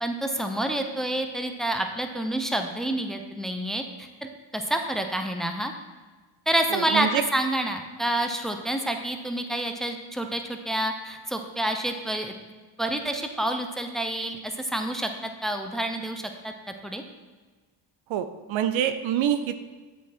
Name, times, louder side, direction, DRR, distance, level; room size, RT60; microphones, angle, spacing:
voice 1, 0.0-5.7 6.5-12.3 12.8-17.0, right 1 dB, ahead, 5 dB, 0.7 m, -28 dB
voice 2, 6.7-7.2 18.1-19.6, right 10 dB, 70° right, 10 dB, 0.6 m, -26 dB
8.0 x 4.8 x 4.2 m, 1.3 s
supercardioid pair, 55°, 50 cm